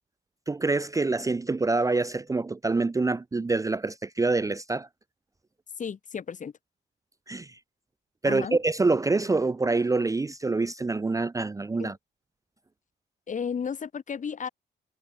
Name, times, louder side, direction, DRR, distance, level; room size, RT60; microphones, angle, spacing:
voice 1, 0.5-4.9 7.3-7.6 8.2-12.0, right 3 dB, 15° right, 0.6 m, -26 dB
voice 2, 5.8-6.5 8.2-8.6 11.8-11.9 13.3-14.5, left 6 dB, 40° left, 1.2 m, -33 dB
cardioid pair, 90°, 20 cm